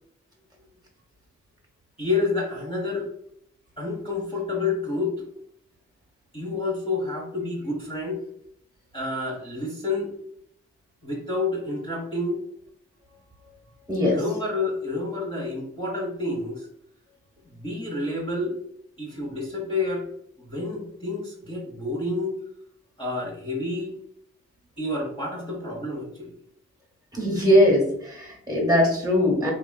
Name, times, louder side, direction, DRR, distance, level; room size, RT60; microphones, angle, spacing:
voice 1, 2.0-3.1 3.8-5.3 6.3-8.2 8.9-10.1 11.0-12.4 14.1-16.7 17.5-18.6 19.0-20.1 20.4-22.3 23.0-23.9 24.8-26.3, left 2 dB, 20° left, -5 dB, 1.1 m, -29 dB
voice 2, 13.9-14.2 27.1-29.5, left 1 dB, 15° right, -1 dB, 1.4 m, -20 dB
2.8 x 2.4 x 2.3 m, 0.72 s
supercardioid pair, 40°, 30 cm